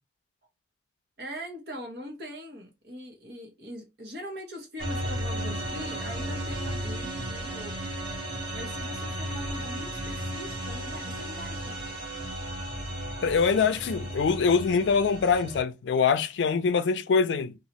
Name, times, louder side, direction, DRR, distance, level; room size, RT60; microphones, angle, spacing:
voice 1, 1.2-8.0 8.5-11.8, equal, 65° right, 1.1 m, -41 dB
sound 1, 4.8-15.6, right 1 dB, 30° right, 1.1 m, -34 dB
voice 2, 13.2-17.6, left 5 dB, 85° left, 0.4 m, -24 dB
2.8 x 2.4 x 2.9 m
head